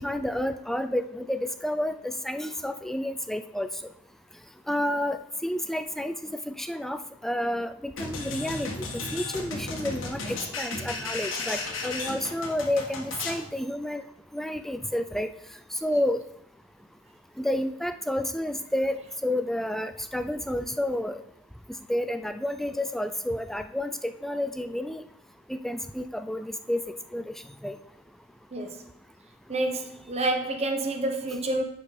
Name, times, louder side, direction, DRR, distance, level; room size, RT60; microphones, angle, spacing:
voice 1, 0.0-3.7 4.7-6.1 6.5-14.0 14.3-15.3 15.8-16.2 17.4-21.2 21.9-25.0 25.5-26.8 27.1-27.2 27.6-27.8, left 1 dB, ahead, 9 dB, 0.3 m, -30 dB
sound 1, 8.0-13.5, left 3 dB, 80° left, 1.7 m, -34 dB
voice 2, 28.5-28.8 29.5-31.6, right 2 dB, 35° right, 4 dB, 1.0 m, -28 dB
10.0 x 5.2 x 5.0 m, 0.74 s
head